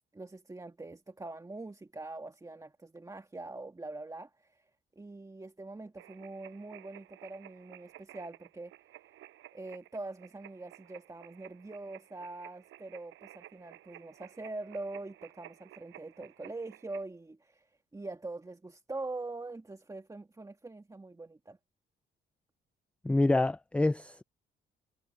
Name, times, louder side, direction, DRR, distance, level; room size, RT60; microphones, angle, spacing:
voice 1, 0.1-4.7 5.0-8.7 9.5-21.6, right 2 dB, 15° right, 2.1 m, -43 dB
sound 1, 6.0-17.0, right 14 dB, 85° right, 7.8 m, -54 dB
voice 2, 23.0-24.2, left 2 dB, 5° left, 0.4 m, -27 dB
cardioid pair, 90°, 20 cm